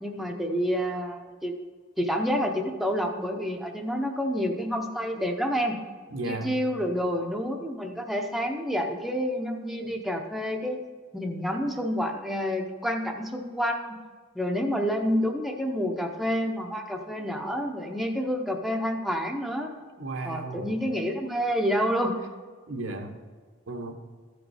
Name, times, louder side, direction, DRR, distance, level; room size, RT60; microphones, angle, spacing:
voice 1, 0.0-1.5 2.0-5.8 6.2-10.8 11.1-14.0 14.3-19.7 20.2-22.2, equal, ahead, 2 dB, 0.6 m, -28 dB
voice 2, 6.1-6.6 20.0-20.7 22.7-23.1 23.7-23.9, right 2 dB, 80° right, 4 dB, 1.1 m, -34 dB
13.5 x 5.1 x 4.8 m, 1.5 s
head